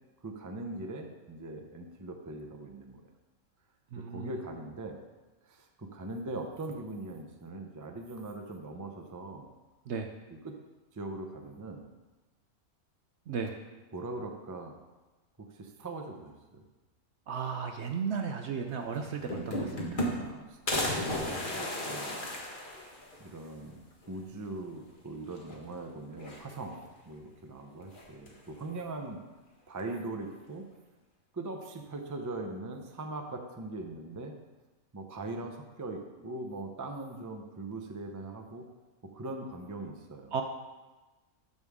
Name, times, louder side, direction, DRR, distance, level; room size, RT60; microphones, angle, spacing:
voice 1, 0.2-3.1 4.0-5.0 5.4-9.5 10.3-10.5 10.9-11.9 13.9-14.7 15.4-16.6 20.2-22.3 23.2-29.2 29.7-30.7 31.3-34.4 34.9-38.7 39.0-40.4, right 2 dB, 25° right, 3 dB, 0.4 m, -41 dB
voice 2, 3.9-4.3 9.9-10.1 13.3-13.5 17.3-20.0 40.3-40.4, right 6 dB, 60° right, 5 dB, 0.8 m, -35 dB
sound 1, 18.7-18.8 19.0-20.4 20.7-23.3 23.7-23.8 24.0-24.1 25.3-25.8 26.1-26.9 27.9-28.5, left 1 dB, 35° left, 1.4 m, -34 dB
13.0 x 5.4 x 3.6 m, 1.2 s
omnidirectional pair, 1.5 m